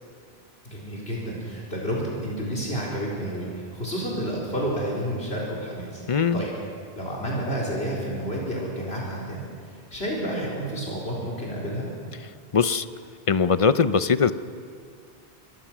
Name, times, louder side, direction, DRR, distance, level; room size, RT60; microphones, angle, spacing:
voice 1, 0.6-6.0 6.3-6.5 7.0-9.5 9.9-11.9, equal, 75° left, -4 dB, 4.4 m, -30 dB
voice 2, 6.1-6.4 12.5-12.8 13.3-14.3, left 5 dB, 40° left, 13 dB, 0.6 m, -20 dB
26.0 x 22.5 x 6.1 m, 2.2 s
omnidirectional pair, 1.1 m